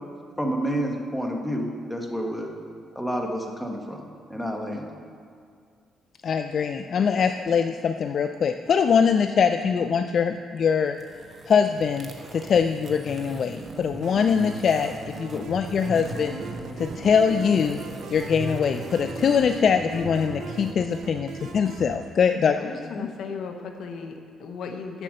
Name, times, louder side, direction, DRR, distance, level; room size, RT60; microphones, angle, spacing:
voice 1, 0.4-2.5 2.9-4.0 4.3-4.9, equal, 5° left, 1 dB, 1.3 m, -29 dB
voice 2, 6.2-11.0 11.5-14.9 15.2-16.4 16.8-17.8 18.1-22.6, left 6 dB, 55° left, 7 dB, 0.3 m, -23 dB
voice 3, 7.2-7.6 22.6-25.0, left 5 dB, 70° left, 5 dB, 0.9 m, -37 dB
sound 1, 10.9-20.8, right 2 dB, 35° right, 1.1 m, -39 dB
sound 2, 14.0-22.0, right 4 dB, 75° right, 0.7 m, -39 dB
7.4 x 6.7 x 6.5 m, 2.2 s
cardioid pair, 90°, 0 cm